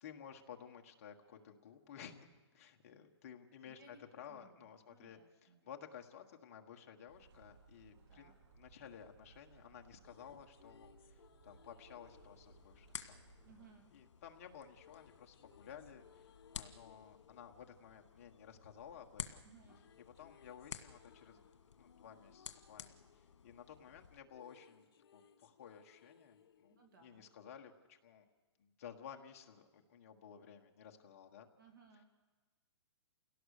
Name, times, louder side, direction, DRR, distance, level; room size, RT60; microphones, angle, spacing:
voice 1, 0.0-2.3 2.5-13.2 13.9-19.5 20.2-21.5 21.8-28.2 28.6-31.5, left 8 dB, 30° left, 3 dB, 1.5 m, -55 dB
voice 2, 3.6-4.0 4.3-5.7 8.1-8.3 13.4-13.9 19.4-19.9 26.7-27.3 31.6-32.0, right 5 dB, 45° right, 3 dB, 3.0 m, -63 dB
sound 1, 7.1-13.7, right 4 dB, 80° right, 5.5 m, -64 dB
sound 2, 10.0-13.9 14.8-19.0 19.3-27.8, left 7 dB, 50° left, 1.5 m, -66 dB
sound 3, 12.0-24.2, left 7 dB, 75° left, 1.7 m, -53 dB
28.5 x 17.5 x 6.6 m, 1.3 s
hypercardioid pair, 180°, 15 cm